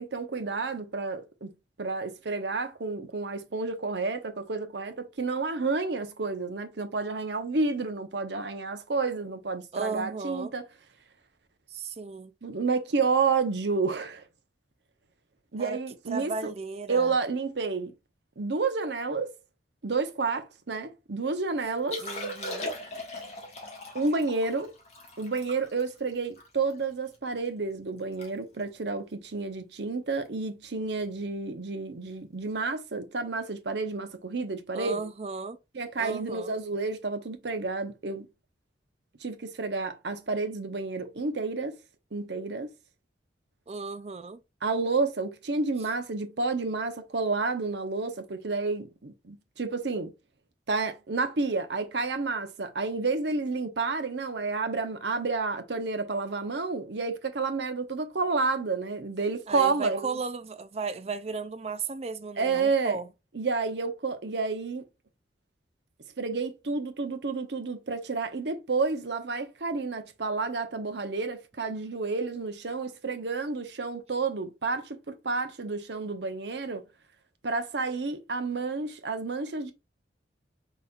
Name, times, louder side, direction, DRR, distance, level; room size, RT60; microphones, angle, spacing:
voice 1, 0.0-1.5 1.8-10.6 12.4-14.2 15.5-16.5 16.9-17.9 18.4-19.3 19.8-22.0 23.9-24.7 25.2-35.1 35.7-38.3 39.2-41.8 42.1-42.7 44.6-50.1 50.7-60.2 62.4-63.0 63.3-64.8 66.2-76.8 77.4-79.7, right 4 dB, 65° right, 0.8 m, -30 dB
voice 2, 9.7-10.5 11.7-12.3 15.6-15.8 16.1-17.1 22.0-22.7 34.7-35.6 36.0-36.5 43.7-44.4 59.5-63.1, right 4 dB, 35° right, 0.4 m, -35 dB
Liquid, 21.8-27.2 27.6-27.7 28.0-28.3 28.6-28.8 29.4-29.6 31.1-31.2, left 1 dB, 35° left, 1.5 m, -39 dB
4.1 x 4.0 x 2.3 m
head